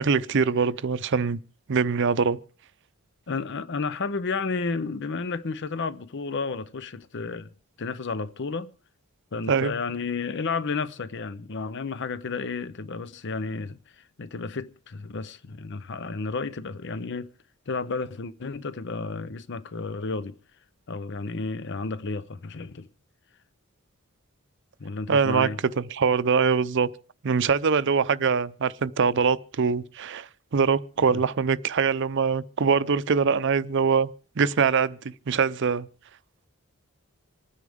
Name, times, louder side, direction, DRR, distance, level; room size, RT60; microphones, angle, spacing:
voice 1, 0.0-1.4 1.7-2.4 9.5-9.7 25.1-25.5 25.8-26.9 27.2-35.0 35.3-35.9, right 5 dB, 55° right, 0.6 m, -23 dB
voice 2, 3.3-8.7 9.3-17.3 17.7-20.4 20.9-22.9 24.8-25.6 31.1-31.2, left 4 dB, 55° left, 0.7 m, -32 dB
26.5 x 9.7 x 3.6 m
head